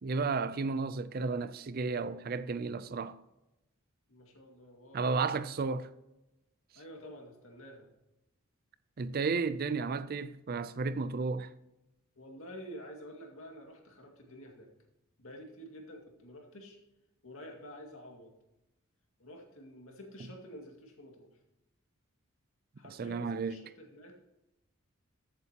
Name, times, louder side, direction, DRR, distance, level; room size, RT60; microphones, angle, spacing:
voice 1, 0.0-3.2 4.9-5.9 9.0-11.5 22.9-23.6, right 4 dB, 45° right, 0.4 m, -33 dB
voice 2, 4.1-5.1 6.7-7.9 12.2-14.7 15.2-16.8 17.2-18.3 19.2-21.3 22.8-24.2, equal, 70° left, 2.2 m, -49 dB
14.0 x 8.0 x 2.9 m
head